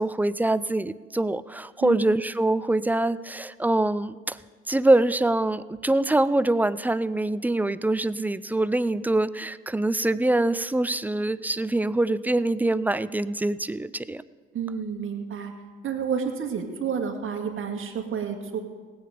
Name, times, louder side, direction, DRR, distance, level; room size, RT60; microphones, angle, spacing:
voice 1, 0.0-4.4 4.7-14.2, right 2 dB, 5° right, 17 dB, 0.4 m, -24 dB
voice 2, 14.5-15.5 15.8-18.6, right 7 dB, 45° right, 3 dB, 2.1 m, -30 dB
18.0 x 8.8 x 5.1 m, 1.5 s
hypercardioid pair, 60°, 29 cm